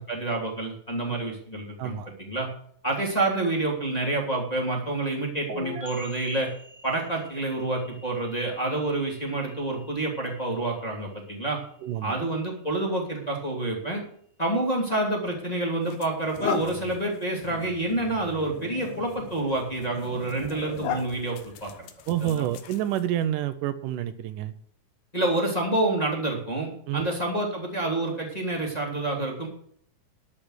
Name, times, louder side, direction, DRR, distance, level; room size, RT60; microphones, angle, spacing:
voice 1, 0.1-2.5 2.8-6.5 6.8-11.6 12.0-14.0 14.4-21.9 22.2-22.4 25.1-29.5, right 2 dB, 10° left, -2 dB, 2.6 m, -28 dB
voice 2, 1.8-2.1 11.8-12.2 22.1-24.5 26.9-27.1, right 12 dB, 80° right, 11 dB, 2.2 m, -28 dB
sound 1, 5.5-13.0, equal, 30° right, 2.6 m, -46 dB
sound 2, 15.1-15.2 15.8-23.2, left 8 dB, 70° left, 2.2 m, -38 dB
12.0 x 6.6 x 8.0 m, 0.63 s
omnidirectional pair, 3.9 m